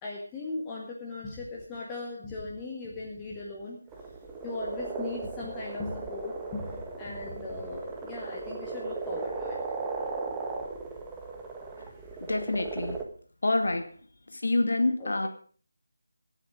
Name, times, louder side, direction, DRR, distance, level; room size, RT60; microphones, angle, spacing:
voice 1, 0.0-3.8 4.4-9.6 15.0-15.3, left 3 dB, 15° left, -3 dB, 1.7 m, -38 dB
sound 1, 3.9-13.0, right 4 dB, 10° right, 1.4 m, -37 dB
voice 2, 12.2-13.0 13.4-13.9 14.3-15.3, left 2 dB, 75° left, 6 dB, 2.3 m, -27 dB
21.0 x 8.1 x 5.0 m, 0.44 s
figure-of-eight pair, 165°, 0 cm